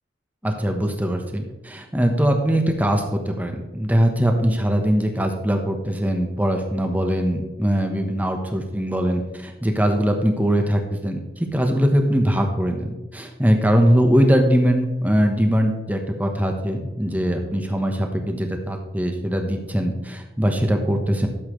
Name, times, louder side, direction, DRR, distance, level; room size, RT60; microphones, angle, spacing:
voice 1, 0.4-21.3, equal, 10° right, 4 dB, 1.1 m, -21 dB
12.0 x 7.4 x 3.2 m, 1.1 s
head